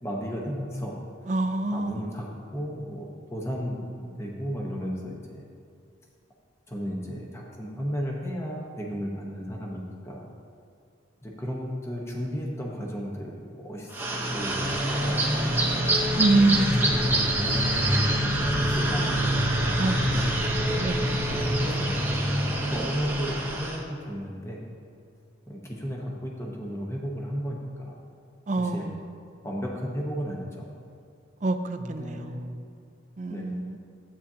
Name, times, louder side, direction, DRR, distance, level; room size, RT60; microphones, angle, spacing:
voice 1, 0.0-0.9 1.7-5.4 6.7-10.2 11.2-13.9 14.3-16.0 16.3-19.4 20.6-21.9 22.6-24.6 25.5-28.0 28.6-28.9 29.4-30.7 31.8-32.4 33.3-33.5, equal, 15° left, -2 dB, 1.0 m, -34 dB
voice 2, 1.3-2.1 16.2-16.9 19.8-20.5 20.8-21.5 28.5-29.1 31.4-32.5 33.2-33.8, right 2 dB, 40° right, 7 dB, 0.5 m, -27 dB
sound 1, 13.9-23.8, right 1 dB, 10° right, 0.9 m, -25 dB
13.0 x 8.7 x 2.8 m, 2.4 s
head